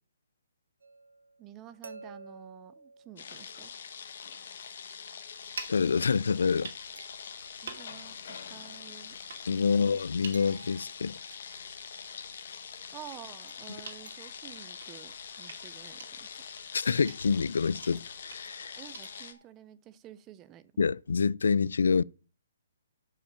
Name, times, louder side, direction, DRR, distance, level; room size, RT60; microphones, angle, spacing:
sound 1, 0.8-3.9 7.0-7.8 10.3-11.5 13.5-14.5 15.4-15.6 16.3-17.1 18.0-19.5, right 3 dB, 90° right, 1.5 m, -53 dB
voice 1, 1.4-3.7 7.6-9.2 9.6-10.0 12.9-16.4 18.8-20.6, right 11 dB, 15° right, 0.4 m, -50 dB
sound 2, 3.2-19.3, left 7 dB, 45° left, 1.4 m, -44 dB
sound 3, 5.3-19.2, right 5 dB, 55° right, 2.5 m, -50 dB
voice 2, 5.7-6.7 9.5-11.1 16.7-18.8 20.8-22.0, left 5 dB, 80° left, 0.4 m, -27 dB
8.7 x 5.7 x 7.3 m
hypercardioid pair, 175°, 0 cm